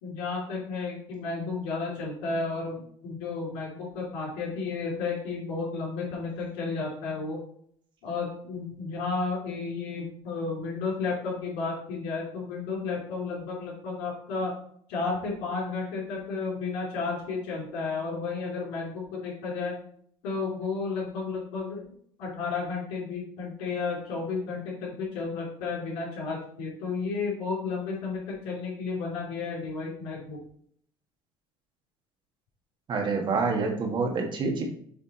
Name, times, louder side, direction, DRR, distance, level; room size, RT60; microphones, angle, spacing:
voice 1, 0.0-7.4 8.0-14.5 14.9-19.7 20.2-21.8 22.2-30.4, left 4 dB, 90° left, -3 dB, 2.8 m, -32 dB
voice 2, 32.9-34.6, right 4 dB, 50° right, 2 dB, 1.6 m, -27 dB
7.3 x 3.4 x 4.2 m, 0.63 s
cardioid pair, 100°, 10 cm